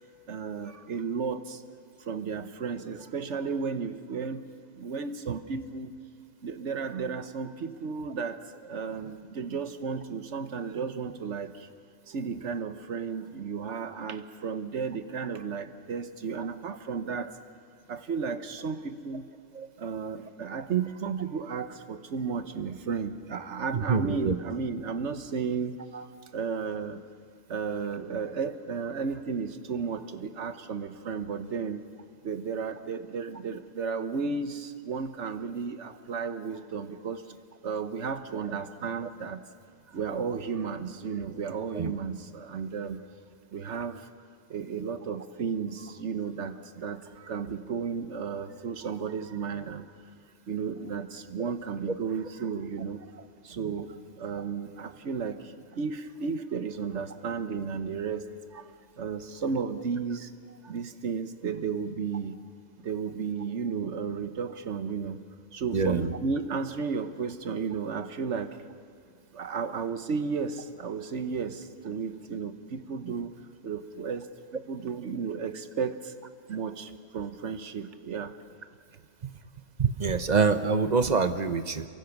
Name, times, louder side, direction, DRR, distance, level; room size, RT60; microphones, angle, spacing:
voice 1, 0.3-1.6 2.0-4.5 4.8-5.9 6.4-11.7 12.1-17.4 17.9-19.3 19.8-25.8 26.3-27.0 27.5-31.9 32.2-37.4 37.6-39.4 39.9-43.0 43.5-44.1 44.5-49.9 50.5-60.3 60.6-62.4 62.8-65.2 65.5-68.6 69.3-76.1 76.5-78.3, right 5 dB, 65° right, 10 dB, 1.3 m, -33 dB
voice 2, 23.7-24.4 25.9-26.0 41.7-41.9 65.7-66.1 79.2-79.3 79.8-81.9, right 5 dB, 40° right, 10 dB, 0.9 m, -25 dB
27.5 x 24.0 x 6.0 m, 2.2 s
omnidirectional pair, 1.3 m